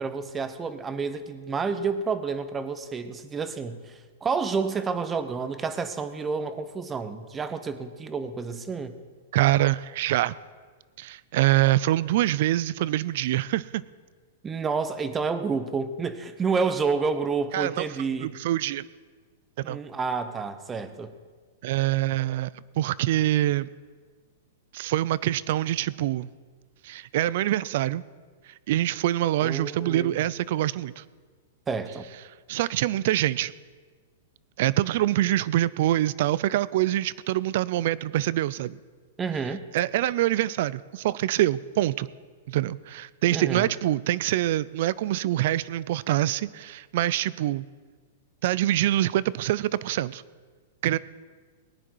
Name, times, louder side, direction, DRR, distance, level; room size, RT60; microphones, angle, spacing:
voice 1, 0.0-8.9 14.4-18.3 19.6-21.1 29.4-30.2 31.7-32.1 39.2-39.6 43.3-43.7, right 5 dB, 15° right, 11 dB, 0.9 m, -29 dB
voice 2, 9.3-10.3 11.0-13.8 17.5-17.8 18.2-18.8 19.7-19.8 21.6-22.5 22.8-23.7 24.7-26.3 26.8-28.0 28.7-31.0 32.5-33.5 34.6-38.8 39.7-42.1 42.5-47.6 48.4-50.2 50.8-51.0, right 14 dB, 60° right, 20 dB, 0.4 m, -25 dB
19.0 x 10.0 x 4.7 m, 1.5 s
hypercardioid pair, 135°, 0 cm